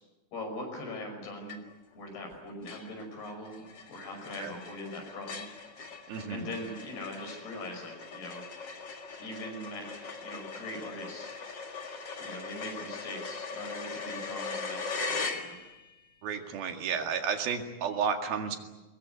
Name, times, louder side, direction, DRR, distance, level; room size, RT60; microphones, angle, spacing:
voice 1, 0.3-1.6 2.0-5.5 6.3-8.5 9.2-11.3 12.2-15.6, left 1 dB, 85° left, 4 dB, 7.7 m, -41 dB
sound 1, 1.5-1.9 2.3-2.4 2.7-15.9, left 4 dB, 40° left, 1.9 m, -40 dB
voice 2, 6.1-6.5 16.2-18.6, right 6 dB, 75° right, 5 dB, 3.9 m, -32 dB
23.5 x 21.0 x 9.4 m, 1.1 s
omnidirectional pair, 4.4 m